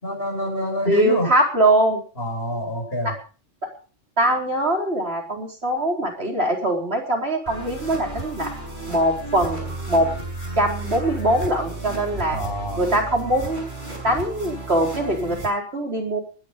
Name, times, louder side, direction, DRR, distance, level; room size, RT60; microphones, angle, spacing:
voice 1, 0.0-1.3 2.2-3.1 12.3-12.9, left 1 dB, 50° left, 2 dB, 7.3 m, -27 dB
voice 2, 0.9-2.0 3.0-3.1 4.2-8.5 8.9-10.1 10.6-12.4 12.8-13.6 14.0-16.2, right 1 dB, 55° right, 1 dB, 4.6 m, -22 dB
sound 1, 7.5-15.5, right 2 dB, 40° right, 6.5 m, -33 dB
20.0 x 11.0 x 5.3 m, 0.38 s
omnidirectional pair, 1.2 m